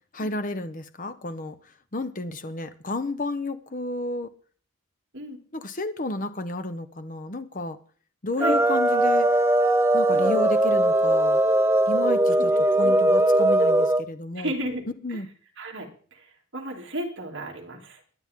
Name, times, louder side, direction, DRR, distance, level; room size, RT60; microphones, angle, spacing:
voice 1, 0.1-1.6 1.9-4.3 5.5-7.8 8.2-9.3 9.9-11.4 11.9-12.5 12.8-14.5 15.0-15.3, left 2 dB, 40° left, 1.0 m, -31 dB
sound 1, 8.4-14.0, right 1 dB, 10° right, 0.6 m, -20 dB
voice 2, 12.4-12.9 14.3-14.8 15.1-15.2 15.6-18.0, right 1 dB, 60° right, 3.1 m, -34 dB
22.0 x 9.1 x 3.7 m
head